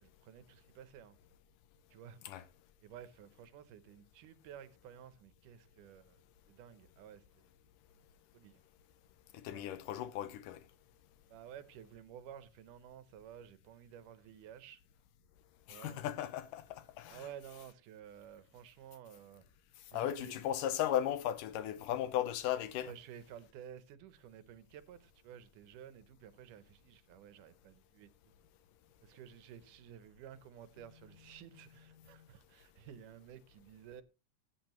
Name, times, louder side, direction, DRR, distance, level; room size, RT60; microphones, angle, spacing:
voice 1, 0.0-1.2 1.9-2.2 2.8-6.2 6.5-7.5 8.3-8.6 9.5-9.8 11.3-14.8 15.7-16.0 17.1-19.4 19.9-20.4 22.9-28.1 29.0-34.0, right 9 dB, 80° right, 2.4 m, -53 dB
voice 2, 9.3-10.6 15.7-17.3 19.9-22.9, left 11 dB, 85° left, 2.5 m, -36 dB
16.0 x 8.6 x 3.0 m
omnidirectional pair, 3.6 m